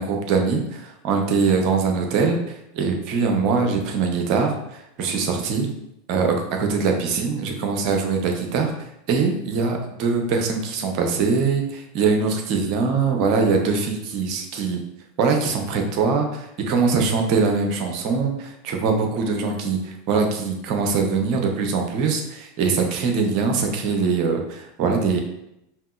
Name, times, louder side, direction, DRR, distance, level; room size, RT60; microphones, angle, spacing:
voice 1, 0.0-5.7 6.1-8.7 9.1-14.8 15.2-25.2, right 4 dB, 50° right, 3 dB, 0.7 m, -22 dB
4.7 x 3.0 x 2.4 m, 0.82 s
figure-of-eight pair, 85°, 0 cm